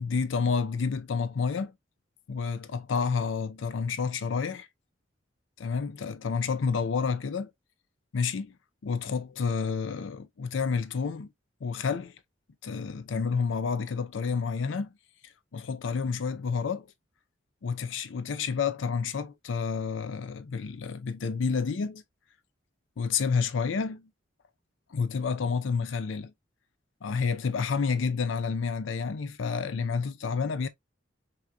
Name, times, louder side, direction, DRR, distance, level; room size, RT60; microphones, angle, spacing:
voice 1, 0.0-1.7 2.3-4.7 5.6-7.5 8.1-8.6 8.8-11.3 11.6-12.2 12.6-14.9 15.2-16.9 17.6-22.0 23.0-24.0 24.9-26.3 27.0-30.7, left 5 dB, 85° left, 0.5 m, -29 dB
6.0 x 2.9 x 2.2 m
head